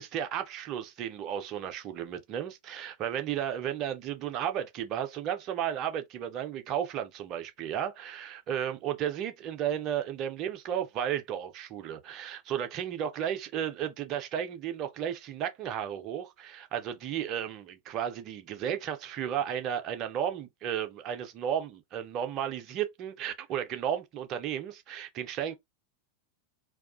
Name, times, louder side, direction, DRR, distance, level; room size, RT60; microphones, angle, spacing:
voice 1, 0.0-25.5, right 9 dB, 35° right, 0.5 m, -33 dB
2.3 x 2.2 x 2.5 m
figure-of-eight pair, 90°, 0 cm